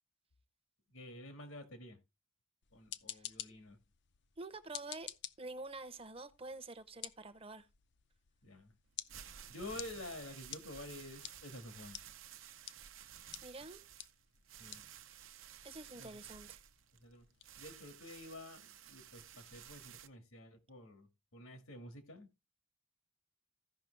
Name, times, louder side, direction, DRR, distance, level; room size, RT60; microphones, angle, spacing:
voice 1, 0.9-2.0 2.7-3.8 8.4-8.7 9.5-12.0 14.6-14.8 15.9-16.2 17.0-17.3 17.6-22.3, left 1 dB, 85° left, 1.9 m, -50 dB
sound 1, 2.6-19.4, left 11 dB, 55° left, 0.5 m, -53 dB
voice 2, 4.4-5.1 5.4-7.7 13.4-13.8 15.6-16.6, right 3 dB, 25° right, 0.8 m, -48 dB
sound 2, 8.9-20.1, right 10 dB, 70° right, 0.7 m, -54 dB
15.0 x 5.8 x 3.3 m
head